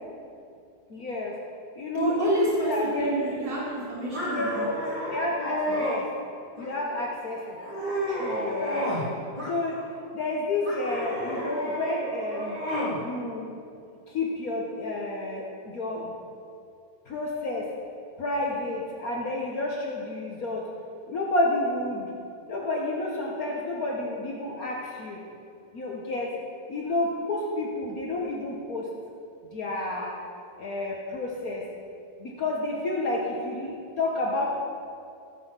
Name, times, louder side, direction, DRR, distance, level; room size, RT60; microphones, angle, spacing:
voice 1, 0.9-1.3 1.8-3.1 4.3-4.7 5.1-6.1 6.6-7.6 8.1-8.9 9.5-9.8 10.1-12.6 13.0-13.5 14.1-16.2 17.0-17.7 18.2-20.6 21.1-22.1 22.5-25.2 25.7-26.3 26.7-28.9 29.5-30.1 30.6-31.6 32.2-34.5, left 2 dB, 55° left, -3 dB, 1.7 m, -30 dB
voice 2, 1.9-4.7, right 2 dB, 90° right, -7 dB, 3.2 m, -28 dB
sound 1, 4.1-6.0 6.6-7.1 7.5-9.1 9.4-10.1 10.6-13.0, equal, 25° right, 3.6 m, -31 dB
16.5 x 6.0 x 7.5 m, 2.5 s
omnidirectional pair, 1.9 m